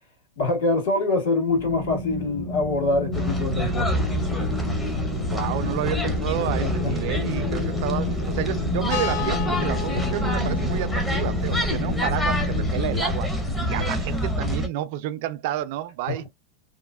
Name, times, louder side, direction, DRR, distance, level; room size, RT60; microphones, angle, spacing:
voice 1, 0.4-4.0 6.6-6.9 13.6-13.8 16.1-16.3, left 2 dB, 85° left, 2.0 m, -25 dB
sound 1, 1.5-12.7, left 2 dB, 65° left, 1.4 m, -31 dB
sound 2, 3.1-14.7, left 1 dB, 10° left, 0.6 m, -26 dB
voice 2, 5.2-13.3 13.6-16.3, right 12 dB, 60° right, 0.4 m, -30 dB
sound 3, 8.9-14.2, left 7 dB, 50° left, 0.7 m, -35 dB
3.1 x 2.0 x 2.3 m
supercardioid pair, 140°, 0 cm